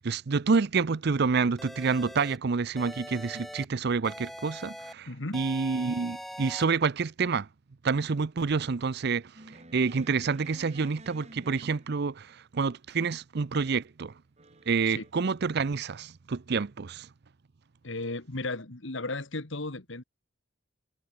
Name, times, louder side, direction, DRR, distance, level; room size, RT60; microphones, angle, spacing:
voice 1, 0.0-5.1 5.3-7.5 7.8-9.3 9.7-14.1 14.7-17.1, right 5 dB, 55° right, 0.6 m, -28 dB
sound 1, 1.6-2.4 2.8-3.6 4.0-4.9 5.3-6.6, equal, ahead, 4.2 m, -42 dB
voice 2, 5.1-5.5 14.9-15.0 17.8-20.0, left 2 dB, 65° left, 2.0 m, -35 dB
sound 2, 9.3-12.3 14.4-15.1, right 1 dB, 35° right, 4.2 m, -51 dB
head